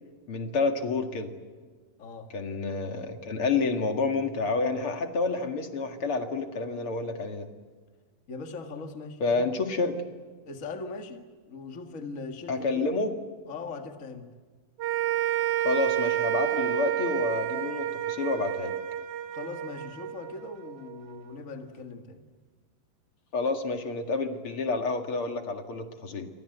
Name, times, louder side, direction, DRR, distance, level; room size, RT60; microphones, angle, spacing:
voice 1, 0.3-1.3 2.3-7.5 9.2-10.0 12.5-13.1 15.6-18.7 23.3-26.3, left 3 dB, 45° left, 6 dB, 1.9 m, -29 dB
voice 2, 2.0-2.3 8.3-9.7 10.4-12.9 13.5-14.3 19.3-22.2, left 3 dB, 75° left, 5 dB, 0.7 m, -40 dB
sound 1, 14.8-21.2, right 13 dB, 65° right, 2.1 m, -30 dB
29.5 x 25.0 x 8.0 m, 1.5 s
omnidirectional pair, 5.0 m